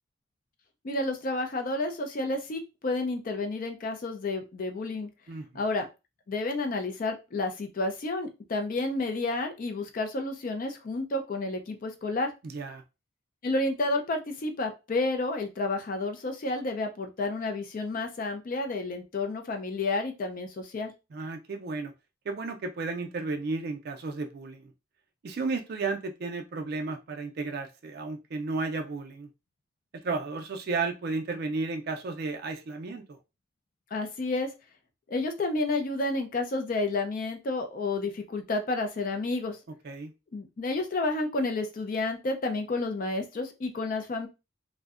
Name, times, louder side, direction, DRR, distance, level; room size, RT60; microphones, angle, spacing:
voice 1, 0.8-5.1 5.5-5.9 6.3-12.3 13.4-20.9 33.9-34.5 35.1-39.6 40.3-44.3, left 2 dB, 45° left, 5 dB, 0.4 m, -30 dB
voice 2, 5.3-5.6 12.4-12.8 21.1-21.9 22.3-24.7 25.2-29.3 29.9-33.2 39.8-40.1, right 3 dB, 55° right, 4 dB, 0.4 m, -33 dB
2.6 x 2.1 x 2.4 m, 0.27 s
head